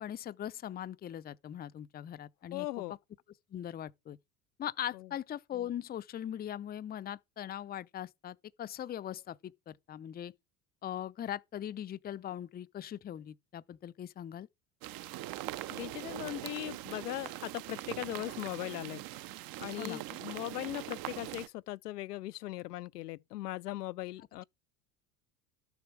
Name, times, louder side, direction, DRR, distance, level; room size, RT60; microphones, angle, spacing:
voice 1, 0.0-2.7 3.5-4.2 4.6-10.3 10.8-14.5 19.8-20.0, left 11 dB, 20° left, 0.5 m, -40 dB
voice 2, 2.5-2.9 4.9-5.1 15.7-19.0 19.6-24.4, left 16 dB, 90° left, 0.6 m, -39 dB
sound 1, 14.8-21.5, right 16 dB, 50° right, 0.8 m, -42 dB
12.5 x 7.0 x 4.7 m
hypercardioid pair, 80°, 46 cm